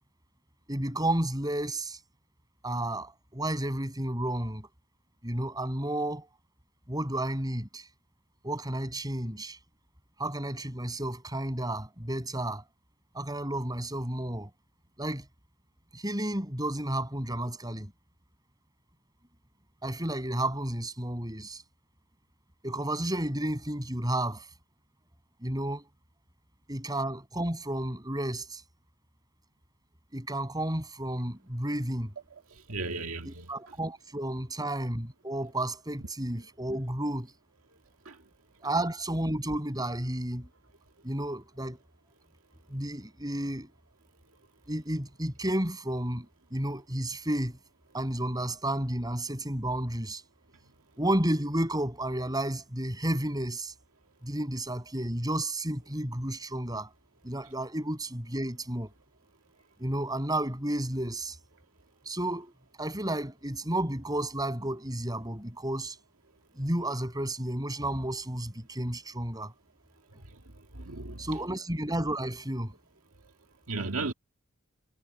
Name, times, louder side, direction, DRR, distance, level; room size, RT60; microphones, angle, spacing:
voice 1, 0.7-2.0 2.6-4.7 5.2-6.3 6.9-7.9 8.4-9.6 10.2-12.6 13.1-14.5 15.0-15.2 15.9-17.9 19.8-21.6 22.6-24.5 25.4-25.8 26.7-28.6 30.1-32.1 33.2-37.3 38.6-40.5 41.0-41.8 42.7-43.7 44.7-46.3 46.5-47.6 47.9-50.2 51.0-53.7 54.2-56.9 57.2-58.9 59.8-61.4 62.1-62.5 62.8-66.0 66.6-69.5 71.2-72.7, right 1 dB, 20° right, 7.9 m, -32 dB
voice 2, 32.5-33.5 38.1-38.2 70.7-71.3 73.7-74.1, right 3 dB, 80° right, 2.0 m, -35 dB
head